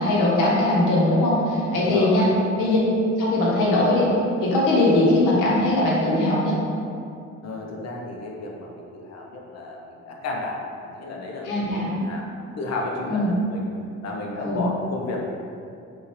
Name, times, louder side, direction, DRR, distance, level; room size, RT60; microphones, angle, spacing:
voice 1, 0.0-2.3 2.6-2.8 3.2-4.1 4.4-6.5 11.4-12.0 13.1-13.4 14.3-14.7, left 1 dB, 90° left, -5 dB, 1.2 m, -20 dB
voice 2, 1.8-2.3 7.4-11.5 11.9-12.2 12.6-13.6 14.0-15.3, left 2 dB, 55° left, -1 dB, 0.9 m, -32 dB
5.8 x 2.7 x 3.1 m, 2.5 s
cardioid pair, 90°, 30 cm